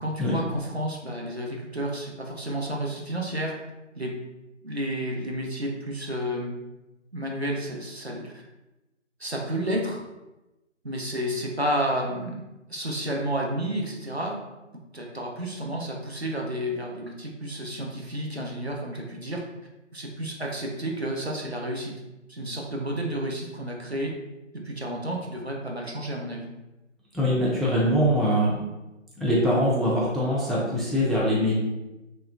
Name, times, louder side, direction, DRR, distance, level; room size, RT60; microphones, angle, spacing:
voice 1, 0.0-3.5 4.0-4.1 4.6-6.6 7.1-8.4 9.2-10.0 10.8-12.4 12.7-14.4 14.9-19.4 19.9-21.9 22.3-24.1 24.6-26.5, right 1 dB, 60° right, -1 dB, 0.5 m, -31 dB
voice 2, 27.1-28.6 29.2-31.6, equal, ahead, -6 dB, 0.4 m, -23 dB
2.9 x 2.2 x 2.4 m, 1.0 s
figure-of-eight pair, 175°, 38 cm